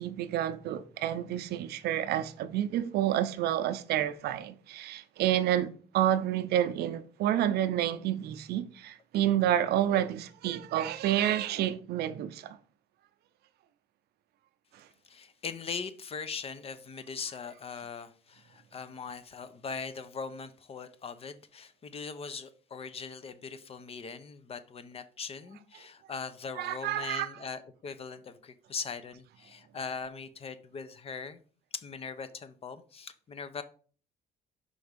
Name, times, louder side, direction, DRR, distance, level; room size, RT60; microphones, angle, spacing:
voice 1, 0.0-12.6 26.6-27.3, right 11 dB, 70° right, 0.6 m, -29 dB
voice 2, 15.1-31.4 31.7-33.6, left 5 dB, 35° left, 0.6 m, -40 dB
5.3 x 3.5 x 5.0 m
cardioid pair, 110°, 17 cm